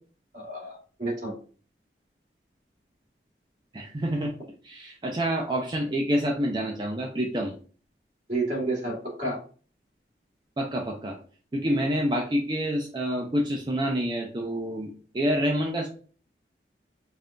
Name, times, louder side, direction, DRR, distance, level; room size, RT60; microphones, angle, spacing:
voice 1, 0.3-1.4 8.3-9.4, right 2 dB, 45° right, -3 dB, 1.9 m, -30 dB
voice 2, 3.7-4.3 4.6-7.6 10.6-11.2 11.5-15.9, equal, 25° right, 0 dB, 0.5 m, -27 dB
5.3 x 2.6 x 2.2 m, 0.41 s
head